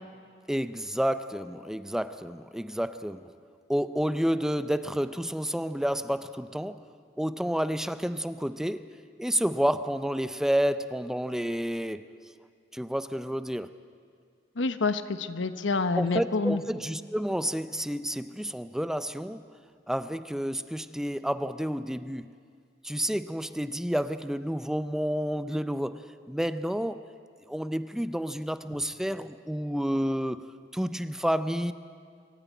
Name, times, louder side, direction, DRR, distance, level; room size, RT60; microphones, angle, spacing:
voice 1, 0.5-3.2 3.7-6.8 7.2-8.9 9.2-12.1 12.7-13.7 15.9-19.5 19.9-22.3 22.8-27.0 27.5-30.4 30.7-31.7, equal, 5° right, 12 dB, 0.5 m, -30 dB
voice 2, 14.6-16.6, left 3 dB, 85° left, 10 dB, 1.0 m, -27 dB
24.5 x 14.0 x 9.2 m, 2.2 s
head